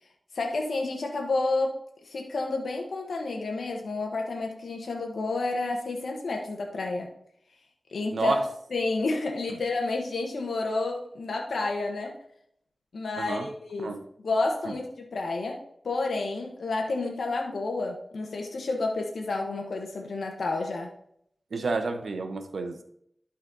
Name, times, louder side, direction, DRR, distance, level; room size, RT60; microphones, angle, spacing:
voice 1, 0.3-1.7 2.0-7.1 7.9-8.4 8.7-12.1 12.9-15.6 15.8-20.9, left 3 dB, 90° left, 1 dB, 1.1 m, -30 dB
voice 2, 8.1-8.5 9.5-9.6 13.2-13.5 13.8-14.0 14.7-14.8 21.5-22.8, right 3 dB, 85° right, 7 dB, 0.9 m, -30 dB
12.0 x 4.1 x 4.0 m, 0.70 s
wide cardioid pair, 60°, 0 cm